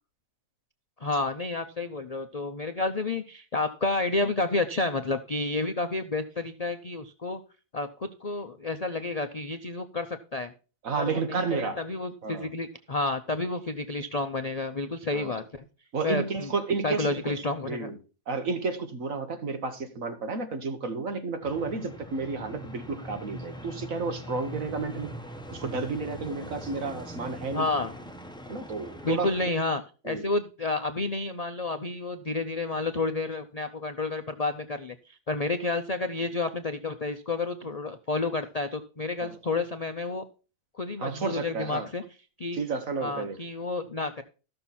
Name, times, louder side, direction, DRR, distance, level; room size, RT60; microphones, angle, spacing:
voice 1, 1.0-7.4 7.7-10.5 11.0-15.6 16.0-16.5 16.8-17.9 27.5-27.9 29.0-40.2 40.8-42.0 42.4-42.6 43.0-44.2, left 3 dB, 45° left, 7 dB, 0.5 m, -30 dB
voice 2, 10.8-11.8 12.2-12.5 15.1-15.4 15.9-18.0 18.3-25.1 25.5-27.7 28.5-29.5 30.1-30.3 39.2-39.4 41.0-41.9 42.5-43.4, right 4 dB, 55° right, 7 dB, 1.7 m, -32 dB
sound 1, 21.4-29.5, equal, 5° left, 0.8 m, -42 dB
13.5 x 6.6 x 4.2 m, 0.34 s
omnidirectional pair, 1.7 m